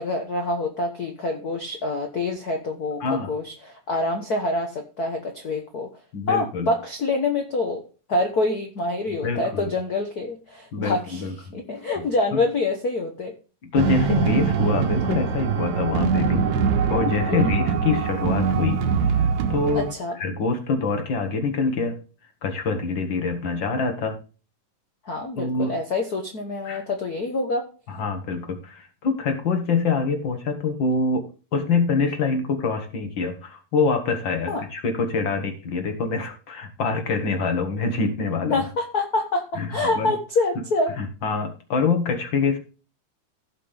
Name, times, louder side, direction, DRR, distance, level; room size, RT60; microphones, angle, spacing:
voice 1, 0.0-5.9 6.3-7.8 8.1-11.2 11.5-13.3 17.3-17.5 19.7-20.2 25.1-27.7 34.5-34.6 38.5-40.9, left 2 dB, 90° left, 4 dB, 0.8 m, -26 dB
voice 2, 3.0-3.3 6.1-6.7 9.1-9.7 10.7-11.5 12.0-12.1 12.3-12.4 13.6-16.5 16.9-18.8 19.2-19.9 20.2-22.0 22.4-24.1 25.4-25.7 26.6-26.8 27.9-31.2 31.5-38.6 39.5-40.1 41.0-42.6, left 4 dB, 45° left, 6 dB, 2.0 m, -25 dB
sound 1, 13.8-19.9, right 6 dB, 70° right, 2.3 m, -23 dB
16.0 x 5.8 x 3.4 m, 0.35 s
omnidirectional pair, 3.5 m